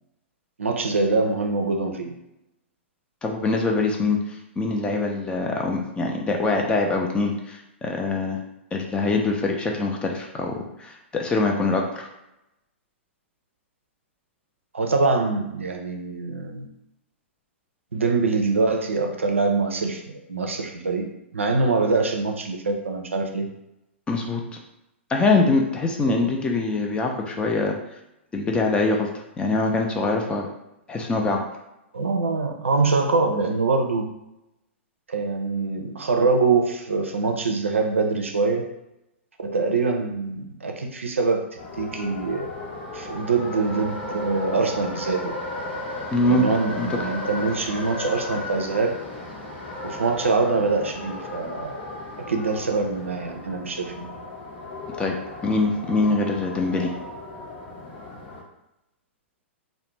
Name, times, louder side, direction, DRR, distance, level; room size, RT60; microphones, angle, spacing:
voice 1, 0.6-2.1 14.7-16.7 17.9-20.0 20.3-21.0 21.3-23.5 26.0-26.3 31.9-34.1 35.1-38.6 39.4-41.4 41.8-42.5 42.9-45.3 46.3-49.0 49.8-51.7 52.3-54.0, right 3 dB, 85° right, 3 dB, 0.4 m, -24 dB
voice 2, 3.2-4.2 4.6-8.4 8.7-12.1 24.1-24.4 25.1-27.8 28.3-29.1 29.4-30.5 30.9-31.4 46.1-46.4 46.8-46.9 55.0-55.2 55.4-56.9, left 3 dB, 15° left, 1 dB, 0.4 m, -23 dB
sound 1, 41.6-58.4, left 2 dB, 55° left, 0.9 m, -35 dB
2.4 x 2.1 x 3.0 m, 0.88 s
figure-of-eight pair, 110°, 7 cm